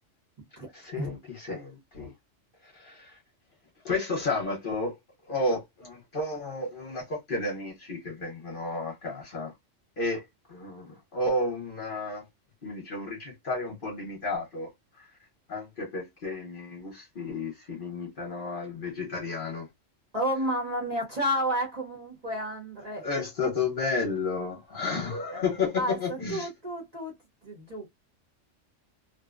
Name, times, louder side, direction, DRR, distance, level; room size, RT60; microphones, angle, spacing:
voice 1, 0.7-2.1 2.6-3.2 3.8-5.0 5.3-9.5 10.0-12.3 12.6-15.1 15.5-19.7 23.0-26.5, left 3 dB, 50° left, 0.9 m, -32 dB
voice 2, 20.1-23.1 25.3-25.4 25.7-27.1 27.4-27.9, equal, 35° right, 0.8 m, -31 dB
2.6 x 2.1 x 2.3 m
omnidirectional pair, 1.3 m